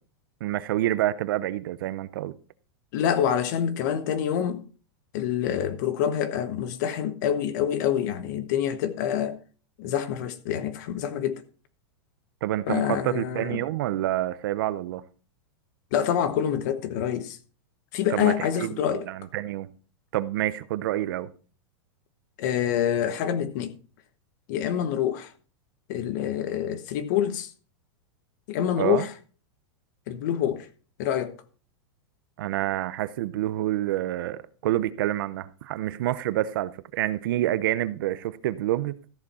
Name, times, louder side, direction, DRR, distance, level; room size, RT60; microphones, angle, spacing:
voice 1, 0.4-2.3 12.4-15.0 18.1-19.7 20.1-21.3 28.8-29.1 32.4-38.9, right 14 dB, 50° right, 0.6 m, -28 dB
voice 2, 2.9-4.6 5.1-9.4 9.8-11.4 12.7-13.6 15.9-17.4 17.9-19.1 22.4-23.7 24.5-25.3 25.9-27.5 28.5-29.1 30.1-30.7 31.0-31.3, left 9 dB, 40° left, 1.1 m, -26 dB
14.0 x 7.1 x 4.2 m
supercardioid pair, 170°, 14 cm